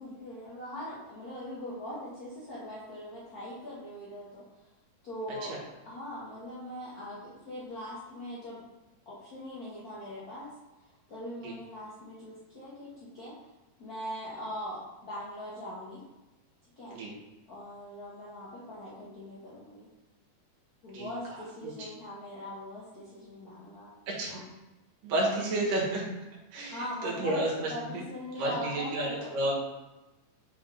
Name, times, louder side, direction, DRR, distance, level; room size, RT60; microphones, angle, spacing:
voice 1, 0.0-4.4 5.0-5.6 5.8-8.6 9.0-10.5 11.1-13.3 13.8-16.0 16.8-17.0 17.5-19.9 20.8-23.9 24.3-24.4 25.2-25.7 26.7-29.4, left 1 dB, 55° left, -9 dB, 1.0 m, -41 dB
voice 2, 25.0-26.1 26.5-28.0 28.4-29.6, right 1 dB, 75° right, -3 dB, 3.1 m, -31 dB
8.1 x 3.5 x 3.8 m, 1.1 s
omnidirectional pair, 3.8 m